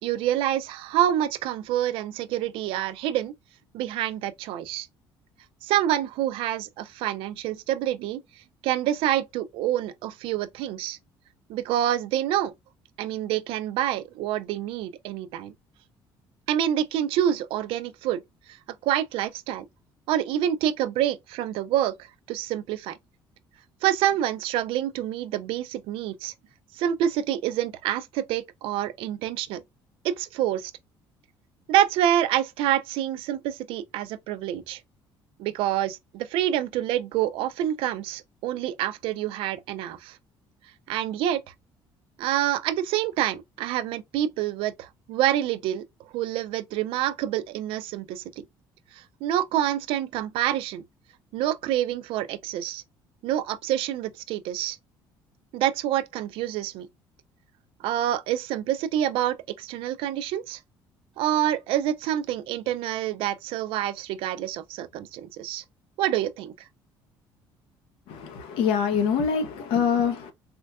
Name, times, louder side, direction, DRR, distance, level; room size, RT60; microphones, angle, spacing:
voice 1, 0.0-3.3 3.7-4.9 5.6-8.2 8.6-11.0 11.5-12.5 13.0-15.5 16.5-18.2 18.8-19.7 20.1-21.9 22.3-23.0 23.8-26.3 26.7-29.6 30.0-30.7 31.7-34.8 35.4-40.2 40.9-41.4 42.2-45.8 46.1-48.4 48.9-50.8 51.3-52.8 53.2-54.8 55.5-56.9 57.8-60.6 61.2-65.6 66.0-66.5, right 11 dB, 80° right, 0.4 m, -27 dB
voice 2, 68.1-70.3, left 7 dB, 85° left, 0.8 m, -25 dB
4.3 x 2.2 x 2.3 m
cardioid pair, 160°, 9 cm